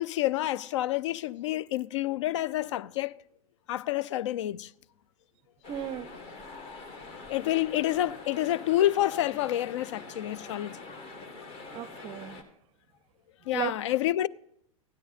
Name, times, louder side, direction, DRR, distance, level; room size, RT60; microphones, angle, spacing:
voice 1, 0.0-3.1 3.7-4.7 7.3-10.8 13.5-14.3, left 14 dB, 55° left, 0.4 m, -28 dB
sound 1, 5.6-12.4, left 3 dB, 30° left, 1.8 m, -45 dB
voice 2, 5.7-6.1 11.7-12.5 13.5-13.7, right 12 dB, 30° right, 0.5 m, -35 dB
16.0 x 11.5 x 4.1 m
figure-of-eight pair, 100°, 19 cm